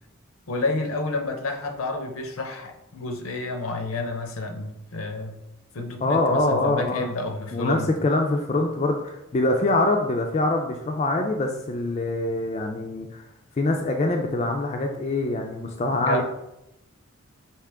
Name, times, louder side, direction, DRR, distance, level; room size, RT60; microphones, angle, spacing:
voice 1, 0.5-5.4 5.7-7.9 15.9-16.2, left 2 dB, 80° left, 5 dB, 0.6 m, -30 dB
voice 2, 6.0-7.1 7.5-13.2 13.6-16.2, left 2 dB, 30° left, 2 dB, 0.3 m, -24 dB
4.8 x 2.9 x 3.4 m, 0.88 s
head